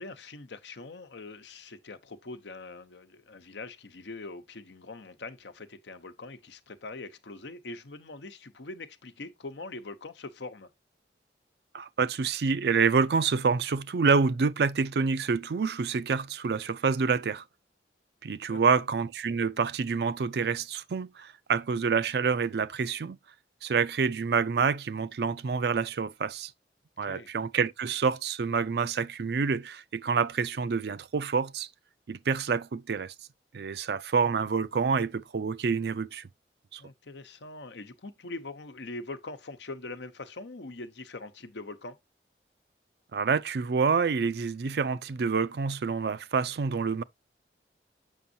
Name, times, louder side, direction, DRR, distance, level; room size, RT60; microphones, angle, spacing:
voice 1, 0.0-10.7 18.5-18.6 27.0-27.3 36.8-42.0, left 3 dB, 85° left, 0.9 m, -42 dB
voice 2, 11.7-17.4 18.2-23.2 23.6-26.5 27.0-31.7 32.1-33.1 33.5-36.3 36.7-36.8 43.1-47.0, right 5 dB, 65° right, 0.4 m, -27 dB
7.2 x 6.2 x 2.7 m
head